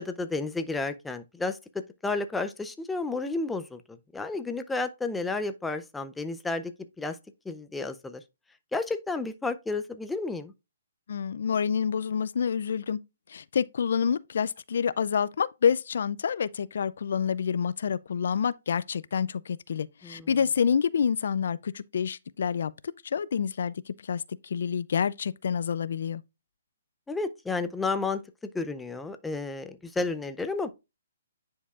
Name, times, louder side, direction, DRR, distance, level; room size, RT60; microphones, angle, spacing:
voice 1, 0.0-1.6 2.0-6.7 7.0-7.2 7.5-8.2 8.7-10.5 20.0-20.3 27.1-28.2 28.5-30.7, left 3 dB, 5° left, 0.4 m, -31 dB
voice 2, 11.1-13.0 13.3-22.7 23.1-23.7 24.1-26.2, left 7 dB, 65° left, 0.3 m, -28 dB
10.0 x 4.6 x 2.4 m
hypercardioid pair, 155°, 0 cm